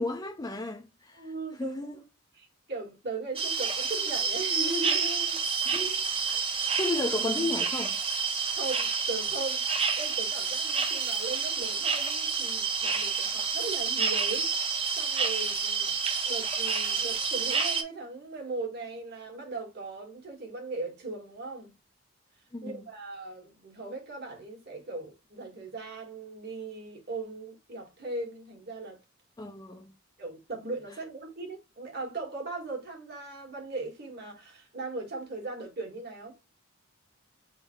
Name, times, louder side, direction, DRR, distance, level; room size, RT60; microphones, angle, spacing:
voice 1, 0.0-1.3 1.6-2.0 5.7-6.4 6.8-8.0 22.5-22.8 29.4-29.9, left 2 dB, 20° left, 0.4 m, -34 dB
voice 2, 1.1-1.9 2.3-5.4 8.5-9.6 10.0-16.0 16.2-21.7 22.6-29.0 30.2-36.3, right 3 dB, 50° right, 1.7 m, -38 dB
sound 1, 3.4-17.8, right 5 dB, 25° right, 0.7 m, -29 dB
3.8 x 2.7 x 4.2 m
head